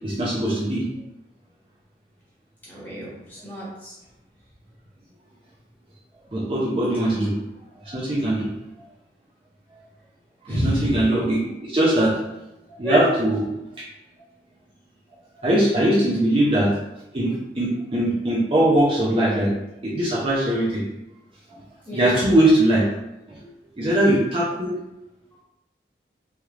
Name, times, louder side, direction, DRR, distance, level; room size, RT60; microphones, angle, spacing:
voice 1, 0.0-0.8 6.3-7.3 7.8-8.5 10.4-12.2 12.8-13.4 15.4-16.7 17.1-19.5 19.8-20.8 21.9-22.9 23.3-23.4 23.8-24.8, right 1 dB, 30° right, -6 dB, 0.5 m, -21 dB
voice 2, 2.6-4.0 6.9-7.1 10.5-11.0 12.8-13.0 21.9-22.2, equal, 10° left, -9 dB, 1.0 m, -29 dB
3.1 x 3.0 x 2.4 m, 0.91 s
head